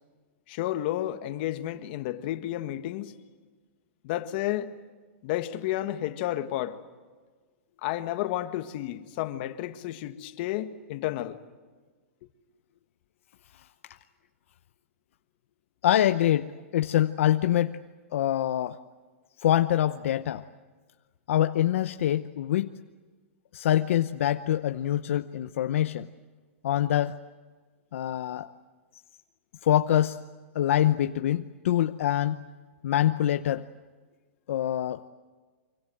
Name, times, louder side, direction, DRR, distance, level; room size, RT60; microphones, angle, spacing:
voice 1, 0.5-3.1 4.0-4.7 5.2-6.8 7.8-11.4, left 14 dB, 45° left, 1.7 m, -31 dB
voice 2, 15.8-17.8 18.1-18.8 19.4-20.4 21.3-22.8 23.5-26.1 26.6-27.2 27.9-28.5 29.6-30.2 30.5-32.5 32.8-33.7 34.5-35.1, left 12 dB, 70° left, 0.8 m, -25 dB
25.5 x 24.5 x 7.9 m
hypercardioid pair, 150°, 7 cm